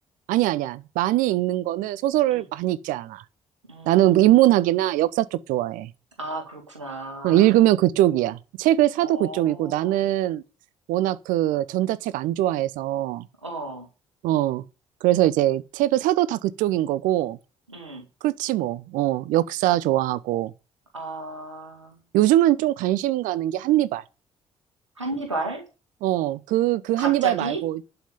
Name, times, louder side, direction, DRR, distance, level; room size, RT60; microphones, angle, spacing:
voice 1, 0.3-3.2 3.9-5.9 7.2-10.4 10.9-13.2 14.2-14.6 15.0-17.4 18.2-20.5 22.1-24.0 26.0-27.8, right 14 dB, 65° right, 0.8 m, -22 dB
voice 2, 3.7-4.4 6.2-7.5 9.0-10.1 13.4-13.9 17.7-18.1 20.9-22.0 25.0-25.7 27.0-27.6, right 2 dB, 90° right, 2.0 m, -34 dB
11.5 x 5.9 x 6.9 m
figure-of-eight pair, 45°, 15 cm